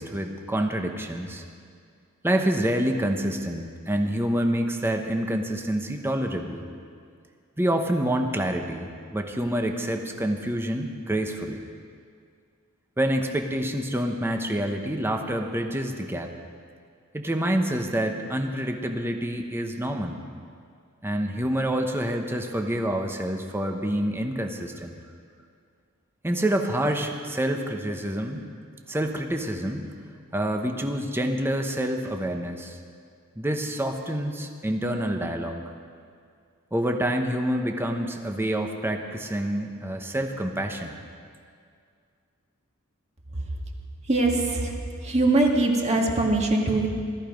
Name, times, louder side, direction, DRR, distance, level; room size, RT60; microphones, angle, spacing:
voice 1, 0.0-1.4 2.2-6.7 7.6-11.6 13.0-16.3 17.1-20.2 21.0-25.0 26.2-28.5 28.9-29.9 30.3-32.8 33.4-35.7 36.7-40.9, right 1 dB, 10° right, 3 dB, 1.0 m, -27 dB
voice 2, 44.0-44.8 45.0-46.9, right 2 dB, 30° right, 0 dB, 1.8 m, -22 dB
18.0 x 14.0 x 5.2 m, 2.2 s
head